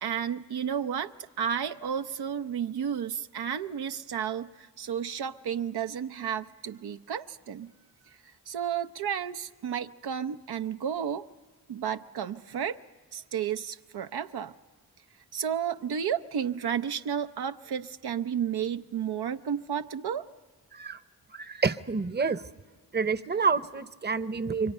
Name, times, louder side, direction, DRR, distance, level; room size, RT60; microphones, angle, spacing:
voice 1, 0.0-7.7 8.2-11.2 11.7-12.8 13.1-14.5 15.3-20.2, right 8 dB, 80° right, 8 dB, 0.6 m, -32 dB
voice 2, 21.3-22.4 22.9-24.7, right 5 dB, 25° right, 14 dB, 0.8 m, -28 dB
28.0 x 23.5 x 5.5 m, 1.4 s
cardioid pair, 50°, 38 cm